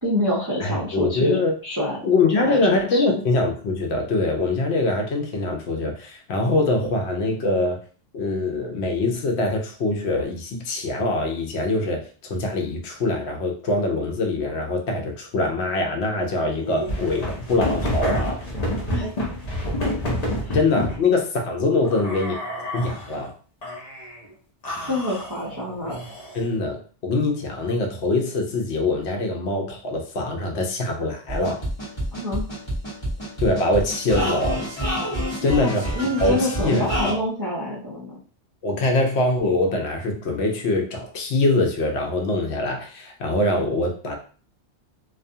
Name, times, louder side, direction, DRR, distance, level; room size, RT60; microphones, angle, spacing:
voice 1, 0.0-2.0 2.3-3.1 18.9-19.1 20.4-20.6 24.9-25.9 32.1-32.5 35.4-38.2, left 1 dB, 30° right, -6 dB, 0.3 m, -27 dB
voice 2, 0.6-1.5 2.0-7.8 8.1-18.4 20.5-22.4 22.7-23.3 26.3-31.6 33.4-34.7 35.4-35.9 36.2-37.2 38.6-44.2, left 2 dB, 75° left, 2 dB, 0.9 m, -23 dB
sound 1, 16.6-21.0 21.8-23.1 23.6-24.2 24.6-26.5, left 1 dB, 40° left, 0.7 m, -28 dB
Flowers Flowers (goofy song), 31.3-37.1, equal, 25° left, 1.1 m, -28 dB
2.3 x 2.3 x 2.6 m, 0.40 s
omnidirectional pair, 1.2 m